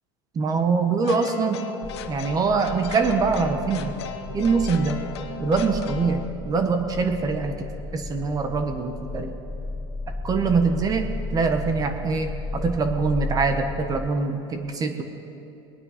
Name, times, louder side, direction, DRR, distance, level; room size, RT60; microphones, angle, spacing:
voice 1, 0.3-1.6 2.1-3.9 4.3-5.0 5.4-7.7 7.9-9.3 10.2-15.0, right 4 dB, 25° right, 6 dB, 1.2 m, -24 dB
sound 1, 1.0-6.2, left 9 dB, 85° left, 1.0 m, -37 dB
sound 2, 1.8-14.1, left 2 dB, 15° left, 0.4 m, -34 dB
20.5 x 9.5 x 5.1 m, 2.9 s
supercardioid pair, 120°, 14 cm